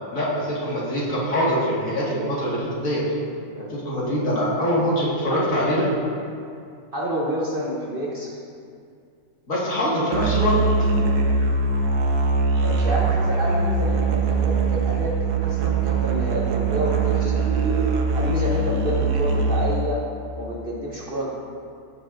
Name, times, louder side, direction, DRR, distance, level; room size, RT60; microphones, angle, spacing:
voice 1, 0.1-3.0 3.6-5.9 9.5-10.6, equal, 60° left, -7 dB, 2.3 m, -24 dB
voice 2, 6.9-8.4 12.6-17.4 18.1-20.0 20.4-21.3, equal, 45° right, -4 dB, 0.9 m, -28 dB
Musical instrument, 10.1-19.9, right 3 dB, 90° right, 1.3 m, -22 dB
15.0 x 6.3 x 2.5 m, 2.3 s
omnidirectional pair, 1.6 m